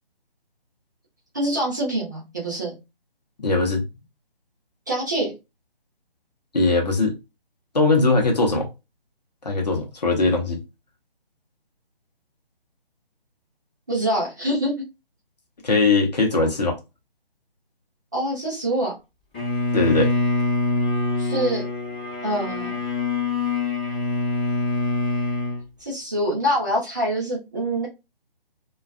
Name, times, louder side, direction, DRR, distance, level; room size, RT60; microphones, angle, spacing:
voice 1, 1.3-2.8 4.9-5.3 13.9-14.7 18.1-19.0 21.2-21.6 22.2-22.8 25.8-27.9, right 1 dB, 20° right, 0.6 m, -25 dB
voice 2, 3.4-3.8 6.5-7.1 7.7-8.7 9.4-10.6 15.6-16.8 19.7-20.1, left 3 dB, 45° left, 0.7 m, -20 dB
Bowed string instrument, 19.3-25.6, left 3 dB, 10° left, 0.8 m, -24 dB
2.4 x 2.3 x 2.4 m
figure-of-eight pair, 145°, 30 cm